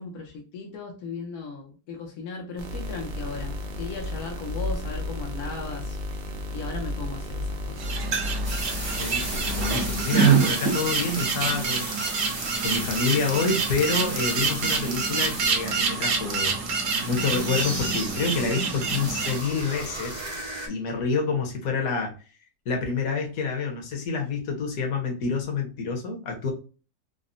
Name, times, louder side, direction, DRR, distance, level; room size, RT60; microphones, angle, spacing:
voice 1, 0.0-6.0 6.5-7.8, left 4 dB, 85° left, 1 dB, 1.2 m, -37 dB
sound 1, 2.6-10.0, left 1 dB, 80° right, 0.4 m, -32 dB
sound 2, 7.8-19.4, right 5 dB, 65° right, 1.0 m, -26 dB
sound 3, 8.4-20.7, right 2 dB, 30° right, 0.5 m, -35 dB
voice 2, 9.0-12.0 12.6-16.5 17.1-20.2 20.7-22.1 22.7-26.5, left 4 dB, 70° left, 2 dB, 1.3 m, -28 dB
3.9 x 2.0 x 2.4 m, 0.34 s
omnidirectional pair, 1.6 m